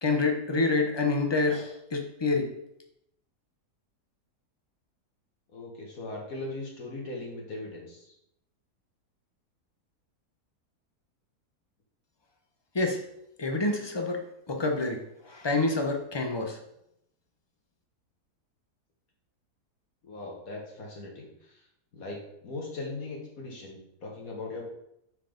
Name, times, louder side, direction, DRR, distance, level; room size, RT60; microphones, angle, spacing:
voice 1, 0.0-2.5 12.7-13.0 13.4-16.6, left 3 dB, 25° left, 3 dB, 0.6 m, -27 dB
voice 2, 5.5-8.1 20.0-21.6 21.9-24.6, left 2 dB, 60° left, -1 dB, 1.7 m, -39 dB
5.8 x 4.7 x 5.1 m, 0.78 s
omnidirectional pair, 1.7 m